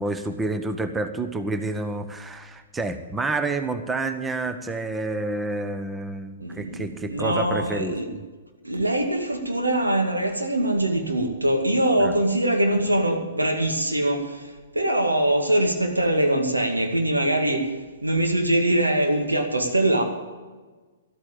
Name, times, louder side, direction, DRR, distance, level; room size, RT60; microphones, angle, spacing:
voice 1, 0.0-8.2 12.0-12.1, right 2 dB, 10° right, 9 dB, 0.9 m, -29 dB
voice 2, 6.4-8.1 8.6-17.7 18.0-20.0, right 1 dB, 85° right, 3 dB, 2.2 m, -23 dB
12.5 x 8.8 x 8.6 m, 1.3 s
figure-of-eight pair, 115°, 0 cm